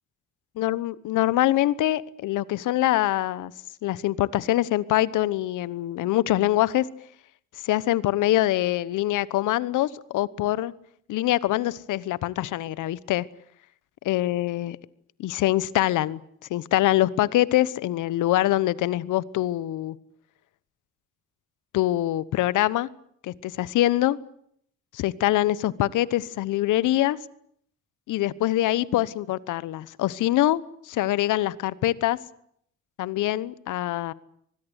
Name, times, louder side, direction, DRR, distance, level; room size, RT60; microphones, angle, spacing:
voice 1, 0.6-3.5 3.8-6.8 7.6-10.7 11.1-13.2 14.0-14.8 15.2-16.2 16.5-19.9 21.7-22.9 23.2-24.2 24.9-27.2 28.1-30.6 30.9-32.2 33.0-34.1, left 14 dB, 85° left, 19 dB, 1.1 m, -24 dB
25.0 x 20.5 x 8.1 m, 0.68 s
cardioid pair, 90°, 30 cm